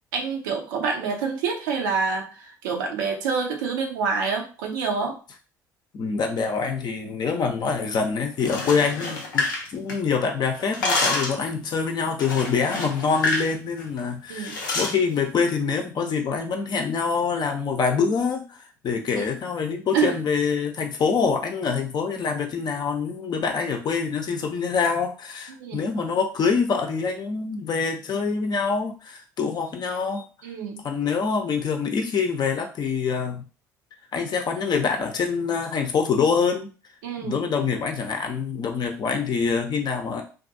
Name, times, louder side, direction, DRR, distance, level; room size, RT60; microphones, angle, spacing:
voice 1, 0.1-2.3 2.6-5.1 14.3-14.5 19.2-19.3 19.9-20.1 25.5-25.8 30.4-30.8 37.0-37.4, right 5 dB, 75° right, 2 dB, 0.7 m, -27 dB
voice 2, 5.9-18.6 18.8-30.3 30.8-33.4 34.1-36.7 37.2-40.2, left 5 dB, 45° left, 4 dB, 0.7 m, -25 dB
sound 1, 8.3-10.2 10.5-11.4 12.2-13.5 13.8-14.0 14.4-15.0, left 3 dB, 85° left, 0.6 m, -27 dB
2.6 x 2.5 x 2.6 m, 0.35 s
hypercardioid pair, 60°, 10 cm